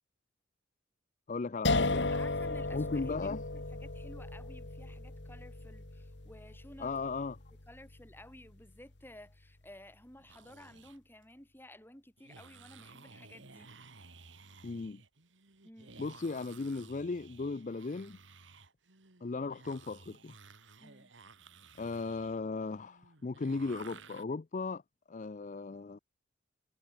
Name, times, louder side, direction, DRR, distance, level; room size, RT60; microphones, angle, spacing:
voice 1, 1.3-2.1 2.7-3.4 6.8-7.4 14.6-15.0 16.0-18.2 19.2-20.4 21.8-24.8 25.1-26.0, left 3 dB, 40° left, 0.5 m, -37 dB
sound 1, 1.6-8.6, left 2 dB, 65° left, 1.8 m, -36 dB
voice 2, 2.1-3.2 3.5-7.1 7.7-13.7 15.6-16.0 20.8-21.1, left 1 dB, 10° left, 4.7 m, -54 dB
sound 2, 10.2-11.0 12.2-24.2, right 4 dB, 80° right, 3.2 m, -55 dB
head